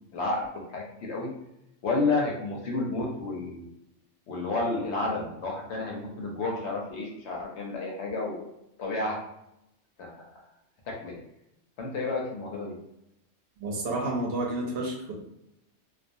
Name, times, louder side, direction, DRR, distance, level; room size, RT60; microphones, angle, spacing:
voice 1, 0.1-1.3 1.8-3.7 4.3-8.5 8.8-9.2 10.0-10.3 10.9-11.2 11.8-12.8, left 3 dB, 70° left, -1 dB, 0.9 m, -31 dB
voice 2, 13.6-15.1, right 2 dB, 60° right, -1 dB, 0.7 m, -30 dB
2.4 x 2.2 x 2.6 m, 0.82 s
omnidirectional pair, 1.3 m